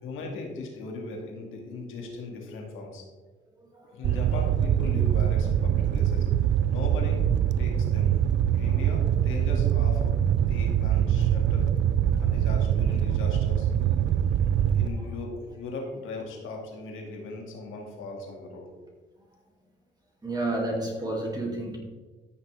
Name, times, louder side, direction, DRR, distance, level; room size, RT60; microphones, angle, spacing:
voice 1, 0.0-3.0 3.9-6.3 6.7-7.3 7.6-8.2 8.5-10.1 10.5-11.7 12.2-13.7 14.8-18.7, left 3 dB, 90° left, 0 dB, 2.4 m, -38 dB
voice 2, 3.6-4.2 5.9-6.0 8.6-8.8 12.3-12.4 14.9-15.1 20.2-21.8, right 2 dB, 20° right, -2 dB, 2.6 m, -32 dB
Fire, 4.0-14.9, right 10 dB, 70° right, 0.5 m, -24 dB
14.0 x 6.1 x 3.5 m, 1.3 s
cardioid pair, 90°, 20 cm